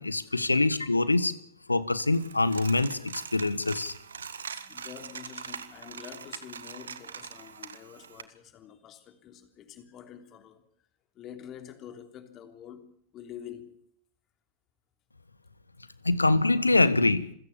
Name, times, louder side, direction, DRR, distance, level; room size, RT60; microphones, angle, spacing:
voice 1, 0.0-1.4 1.7-3.9 16.0-17.3, left 2 dB, 80° left, 1.5 m, -24 dB
Coin (dropping), 2.0-8.2, right 7 dB, 70° right, 1.6 m, -42 dB
voice 2, 4.5-10.7 11.1-13.8, left 9 dB, 35° left, 3.3 m, -47 dB
27.5 x 17.0 x 7.1 m
figure-of-eight pair, 90°, 0 cm